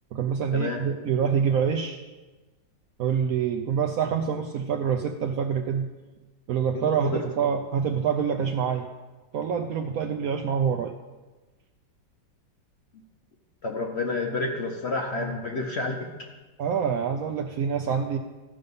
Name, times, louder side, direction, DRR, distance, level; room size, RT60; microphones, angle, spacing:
voice 1, 0.1-2.0 3.0-5.9 6.5-8.9 9.3-10.9 16.6-18.2, right 7 dB, 70° right, 4 dB, 0.8 m, -26 dB
voice 2, 6.7-7.2 13.6-16.1, left 2 dB, 50° left, 1 dB, 0.8 m, -29 dB
14.0 x 5.3 x 5.4 m, 1.2 s
omnidirectional pair, 2.0 m